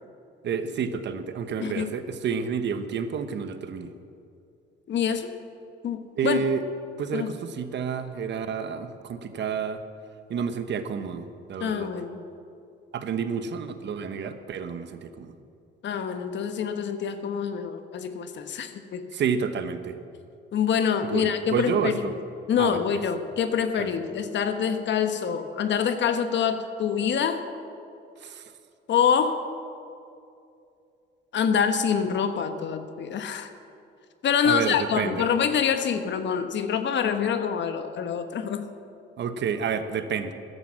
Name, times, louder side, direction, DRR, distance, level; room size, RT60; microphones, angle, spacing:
voice 1, 0.4-3.9 6.2-6.6 7.0-9.8 10.3-11.9 12.9-15.3 19.1-19.9 21.0-22.1 22.6-22.8 23.8-23.9 28.2-28.4 34.4-35.3 39.2-40.3, right 6 dB, 65° right, 10 dB, 1.1 m, -29 dB
voice 2, 1.6-1.9 4.9-5.4 5.8-6.4 7.1-7.3 11.6-12.3 15.8-19.1 20.5-22.1 22.5-27.5 28.9-29.4 31.3-33.5 34.2-38.7, left 7 dB, 65° left, 8 dB, 1.1 m, -26 dB
13.5 x 11.0 x 7.4 m, 2.5 s
cardioid pair, 90°, 20 cm